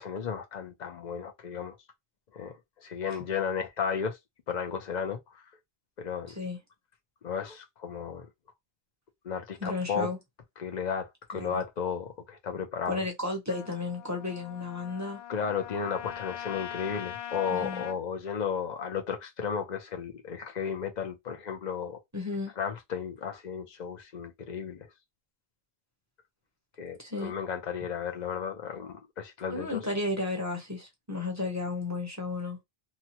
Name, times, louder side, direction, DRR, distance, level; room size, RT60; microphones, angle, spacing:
voice 1, 0.0-1.8 2.3-4.2 4.5-5.4 6.0-6.4 7.2-8.3 9.2-10.1 10.6-13.0 15.3-22.0 22.6-24.9 26.8-29.8, left 6 dB, 50° left, 0.8 m, -34 dB
voice 2, 6.3-6.6 9.6-10.2 11.3-11.6 12.9-15.2 17.5-17.8 22.1-22.5 27.0-27.3 29.5-32.6, left 3 dB, 20° right, 0.8 m, -33 dB
Trumpet, 13.5-18.0, left 11 dB, 80° left, 0.8 m, -41 dB
2.9 x 2.2 x 2.8 m
omnidirectional pair, 1.0 m